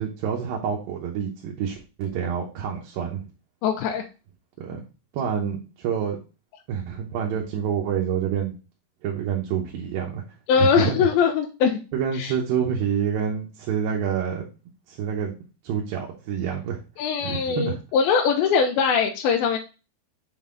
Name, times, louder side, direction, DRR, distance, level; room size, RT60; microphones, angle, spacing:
voice 1, 0.0-3.2 4.6-4.8 5.1-6.2 6.7-8.5 9.0-10.2 10.6-11.1 11.9-14.5 14.9-15.3 15.6-16.8 17.2-17.8, right 8 dB, 75° right, -1 dB, 2.7 m, -27 dB
voice 2, 3.6-4.0 10.5-11.8 12.1-12.3 17.0-19.6, left 6 dB, 90° left, 2 dB, 2.5 m, -21 dB
6.7 x 4.0 x 3.6 m, 0.32 s
omnidirectional pair, 4.3 m